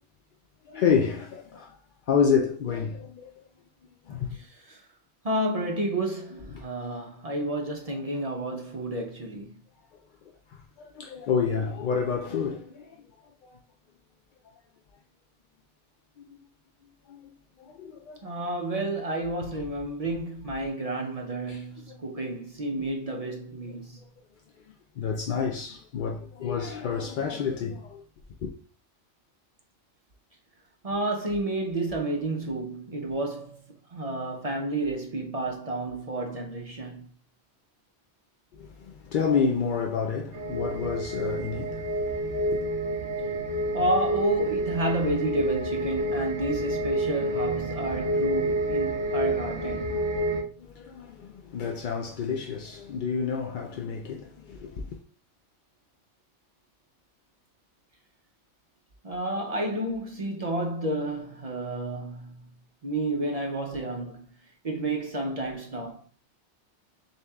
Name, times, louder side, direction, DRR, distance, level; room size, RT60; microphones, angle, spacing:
voice 1, 0.7-1.8 2.1-3.3 4.0-4.4 6.3-6.7 7.9-8.1 10.5-13.0 13.4-13.6 16.2-16.3 17.1-17.3 17.6-18.3 21.5-21.6 21.9-22.0 24.7-28.0 28.4-28.5 38.5-42.6 50.6-55.0, left 6 dB, 60° left, 0.5 m, -29 dB
voice 2, 5.2-9.6 18.2-24.0 30.8-33.6 33.9-37.1 43.7-49.9 59.0-62.5 62.8-64.3 64.6-66.0, right 1 dB, 40° right, 0.6 m, -30 dB
sound 1, 40.3-50.4, right 1 dB, 60° right, 1.8 m, -29 dB
6.6 x 2.8 x 2.3 m
omnidirectional pair, 1.2 m